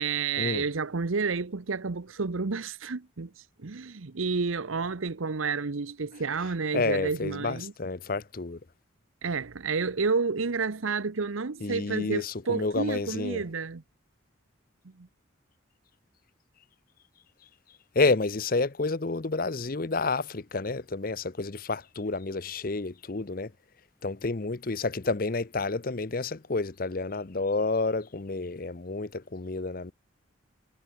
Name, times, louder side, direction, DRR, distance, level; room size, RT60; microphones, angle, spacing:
voice 1, 0.0-7.7 9.2-13.8 15.0-15.1, right 4 dB, 85° right, 0.9 m, -30 dB
voice 2, 6.7-8.6 11.6-13.4 17.9-23.5 24.0-29.9, left 3 dB, 45° left, 0.7 m, -29 dB
head